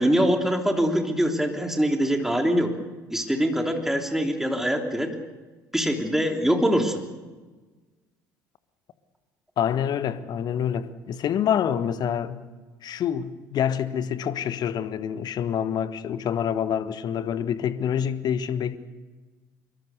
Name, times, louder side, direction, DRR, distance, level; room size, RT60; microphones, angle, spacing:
voice 1, 0.0-2.8 3.1-5.1 5.7-7.0, equal, 5° right, 3.4 m, -23 dB
voice 2, 9.6-12.5 12.8-18.8, left 9 dB, 45° left, 1.4 m, -27 dB
24.5 x 23.0 x 6.7 m
figure-of-eight pair, 55°, 10 cm